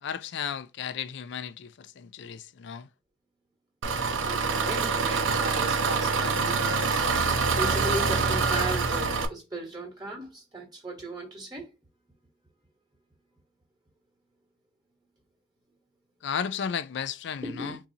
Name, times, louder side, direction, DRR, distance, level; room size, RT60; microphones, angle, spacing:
voice 1, 0.0-2.9 16.2-17.8, left 7 dB, 60° left, 0.3 m, -34 dB
Engine, 3.8-9.3, right 4 dB, 75° right, 0.6 m, -25 dB
voice 2, 4.2-7.0 7.6-11.7 17.4-17.8, right 1 dB, 20° right, 1.2 m, -36 dB
3.8 x 2.7 x 2.7 m
head